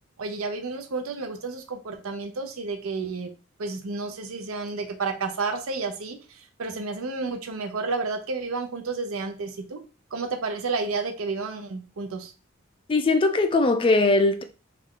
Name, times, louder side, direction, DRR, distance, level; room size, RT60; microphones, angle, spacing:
voice 1, 0.2-3.3 3.6-9.8 10.1-12.3, right 4 dB, 80° right, 0.6 m, -31 dB
voice 2, 12.9-14.4, left 2 dB, 25° left, 0.3 m, -20 dB
3.3 x 2.4 x 3.7 m
head